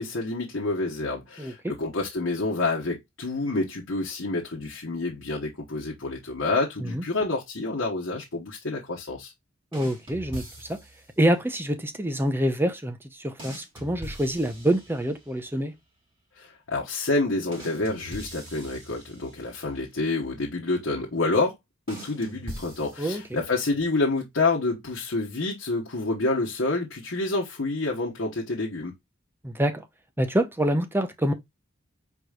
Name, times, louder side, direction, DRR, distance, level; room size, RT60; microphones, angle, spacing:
voice 1, 0.0-9.3 16.4-21.6 21.9-28.9, left 2 dB, 75° left, 1.2 m, -28 dB
voice 2, 9.7-10.8 11.2-15.7 23.0-23.4 29.4-29.8 30.2-31.3, right 1 dB, 10° right, 0.7 m, -26 dB
sound 1, 9.7-11.1 13.4-15.4 17.5-19.7 21.9-23.5, equal, 25° right, 3.0 m, -42 dB
4.9 x 4.6 x 2.4 m
head